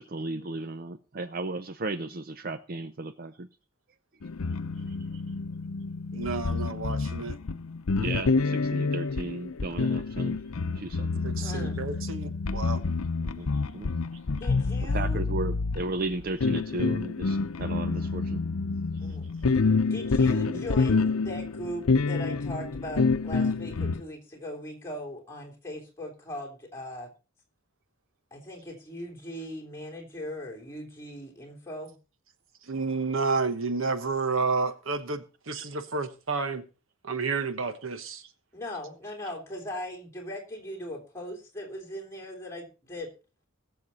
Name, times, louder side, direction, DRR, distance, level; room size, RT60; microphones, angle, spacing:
voice 1, 0.0-3.5 4.9-5.0 8.0-11.2 13.2-13.9 14.9-18.4 18.9-19.2 20.5-20.7, right 2 dB, 45° right, 0.5 m, -35 dB
sound 1, 4.2-24.0, left 4 dB, 90° left, 0.7 m, -28 dB
voice 2, 6.1-7.4 11.2-12.8 32.6-36.6 37.0-38.3, right 4 dB, 70° right, 1.2 m, -30 dB
voice 3, 11.4-11.7 14.4-15.2 19.0-19.3 19.9-27.1 28.3-31.9 38.5-43.1, equal, 10° left, 3.3 m, -39 dB
20.5 x 7.1 x 4.1 m
head